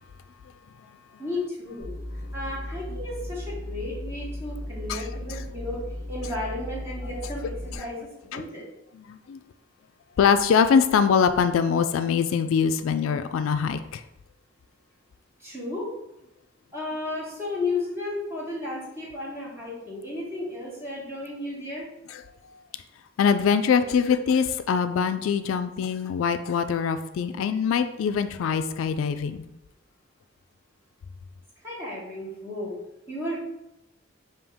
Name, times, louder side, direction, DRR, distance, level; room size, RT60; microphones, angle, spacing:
voice 1, 1.2-1.9 2.3-5.8 6.1-8.7 15.4-15.9 16.7-21.9 31.6-32.8 33.1-33.4, left 2 dB, 10° right, -6 dB, 1.4 m, -33 dB
sound 1, 1.8-7.7, left 1 dB, 55° right, 1.2 m, -36 dB
voice 2, 8.9-9.4 10.2-14.0 22.1-22.2 23.2-29.4, left 6 dB, 80° left, 11 dB, 0.3 m, -23 dB
5.2 x 2.8 x 3.5 m, 0.91 s
head